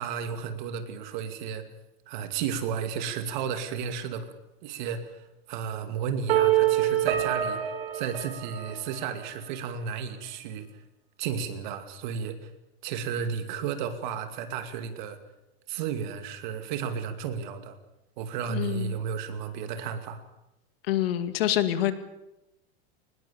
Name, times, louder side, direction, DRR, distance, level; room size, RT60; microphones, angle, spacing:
voice 1, 0.0-1.7 2.1-4.3 4.6-7.6 7.9-10.6 11.2-12.5 12.8-15.2 15.7-17.8 18.2-20.2, right 7 dB, 45° right, 8 dB, 2.5 m, -33 dB
sound 1, 6.3-9.2, right 12 dB, 70° right, 4.1 m, -26 dB
voice 2, 18.5-18.9 20.9-21.9, left 12 dB, 65° left, 10 dB, 2.2 m, -26 dB
23.5 x 20.5 x 7.1 m, 0.92 s
supercardioid pair, 175°, 32 cm